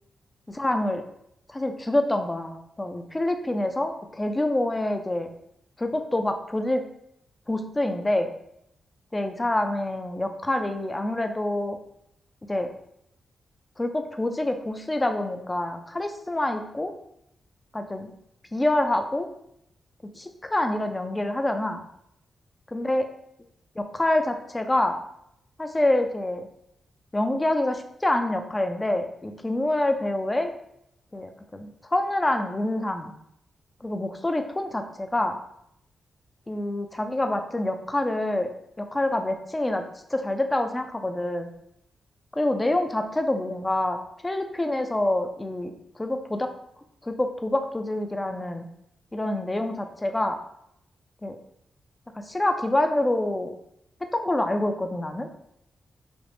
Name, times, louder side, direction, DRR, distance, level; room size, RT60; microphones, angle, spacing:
voice 1, 0.5-1.0 1.5-5.3 5.8-6.9 7.5-8.3 9.1-11.8 12.5-12.7 13.8-16.9 17.7-18.1 18.5-19.3 20.1-21.8 22.7-23.0 23.8-25.0 25.6-26.5 27.1-30.5 31.1-33.1 33.8-35.4 36.5-38.5 38.8-39.8 40.1-41.5 42.3-44.0 44.2-45.7 46.0-46.5 47.0-48.6 49.1-50.4 51.2-51.4 52.2-53.5 54.1-55.3, left 1 dB, 20° left, 6 dB, 0.5 m, -26 dB
5.1 x 2.0 x 3.1 m, 0.75 s
cardioid pair, 70°, 0 cm